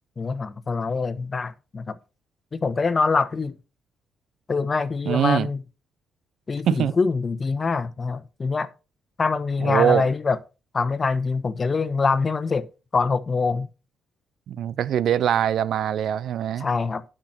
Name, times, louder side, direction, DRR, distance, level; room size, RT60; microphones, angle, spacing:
voice 1, 0.2-2.0 2.5-3.5 4.5-5.6 6.5-8.7 9.2-10.4 10.7-12.7 12.9-13.7 16.6-17.0, left 4 dB, 35° left, 1.1 m, -24 dB
voice 2, 5.1-5.5 6.7-6.9 9.6-10.0 14.5-16.7, right 10 dB, 70° right, 0.4 m, -22 dB
12.0 x 6.0 x 4.3 m
cardioid pair, 90°, 0 cm